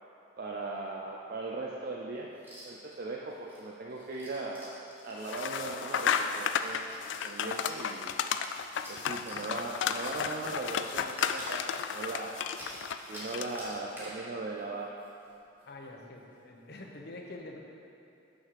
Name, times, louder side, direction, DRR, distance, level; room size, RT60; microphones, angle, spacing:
voice 1, 0.4-2.3 2.6-4.7 5.0-6.9 7.2-8.1 8.9-12.4 13.1-15.0, right 3 dB, 55° right, -2 dB, 0.5 m, -38 dB
sound 1, 2.4-2.9 3.3-13.3 13.6-14.2 14.6-14.7 15.0-15.3 15.6-15.7 16.2-16.4, equal, 10° right, 1.6 m, -50 dB
sound 2, 5.2-13.7, left 7 dB, 75° left, 0.3 m, -33 dB
voice 2, 15.6-17.6, left 2 dB, 60° left, 0 dB, 0.9 m, -46 dB
6.7 x 6.2 x 4.7 m, 2.8 s
head